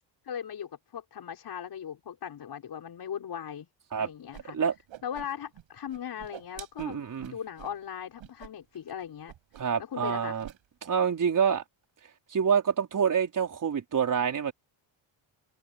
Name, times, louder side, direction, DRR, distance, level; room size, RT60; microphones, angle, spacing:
voice 1, 0.2-3.7 4.0-4.6 5.0-7.0 7.3-9.3 9.8-10.4, left 8 dB, 50° left, 6.5 m, -38 dB
Whoosh swoosh swish, 4.3-4.4 4.7-5.6 5.9-7.8 8.2-8.5 8.7-8.9 9.3-9.8 10.0-10.6, right 12 dB, 75° right, 5.7 m, -47 dB
voice 2, 6.8-7.4 9.6-10.5 10.8-11.6 12.3-14.5, right 7 dB, 40° right, 4.6 m, -27 dB
cardioid pair, 130°, 47 cm